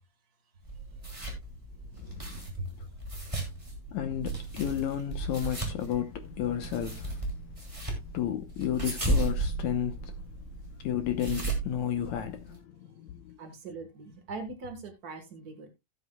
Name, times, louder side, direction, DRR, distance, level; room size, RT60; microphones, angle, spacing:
sound 1, 0.6-12.6, right 2 dB, 10° right, 2.7 m, -35 dB
voice 1, 1.9-2.5 2.8-2.9 3.3-3.5 3.9-7.5 8.0-13.4, left 10 dB, 75° left, 1.7 m, -33 dB
voice 2, 13.4-15.7, right 2 dB, 70° right, 0.9 m, -40 dB
16.5 x 8.1 x 2.3 m
omnidirectional pair, 4.4 m